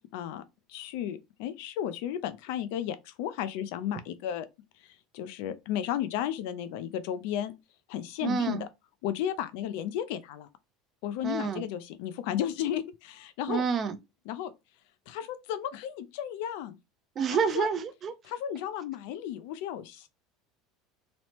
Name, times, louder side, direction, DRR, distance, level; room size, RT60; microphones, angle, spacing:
voice 1, 0.1-0.4 0.7-4.5 5.1-7.5 7.9-8.7 9.0-10.5 11.0-13.6 14.3-14.5 15.1-16.8 17.5-17.7 18.3-20.1, left 10 dB, 75° left, 0.4 m, -33 dB
voice 2, 8.2-8.6 11.2-11.6 13.5-14.0 17.2-18.1, right 6 dB, 30° right, 0.5 m, -28 dB
3.0 x 2.0 x 2.8 m
supercardioid pair, 135°, 0 cm